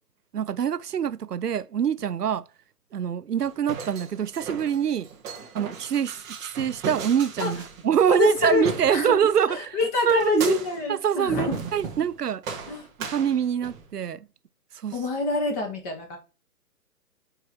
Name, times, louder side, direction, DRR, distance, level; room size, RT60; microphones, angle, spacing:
voice 1, 0.3-2.4 2.9-5.1 5.5-9.8 10.1-10.5 10.9-12.4 13.1-14.2 14.8-15.0, right 8 dB, 85° right, 0.7 m, -24 dB
sound 1, 3.4-9.4 10.1-10.9 11.4-12.1 12.4-13.9, right 5 dB, 10° right, 0.7 m, -37 dB
voice 2, 8.1-9.2 9.5-11.6 12.7-12.9 14.9-16.2, left 4 dB, 25° left, 2.0 m, -27 dB
8.8 x 4.9 x 4.5 m
hypercardioid pair, 145°, 46 cm